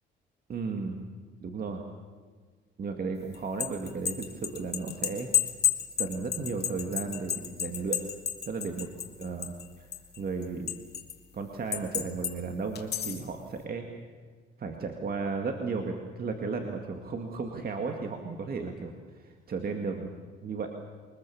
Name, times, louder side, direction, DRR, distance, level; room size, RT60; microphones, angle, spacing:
voice 1, 0.5-1.0 1.4-1.8 2.8-5.3 6.0-8.0 8.5-8.9 9.2-9.9 10.2-10.7 11.3-13.9 14.6-20.1 20.4-20.7, right 4 dB, 50° right, 4 dB, 2.1 m, -34 dB
sound 1, 3.3-9.7 9.9-11.1 11.7-12.3 12.8-13.3, left 9 dB, 55° left, 2.3 m, -30 dB
23.5 x 20.5 x 7.2 m, 1.5 s
cardioid pair, 90°, 20 cm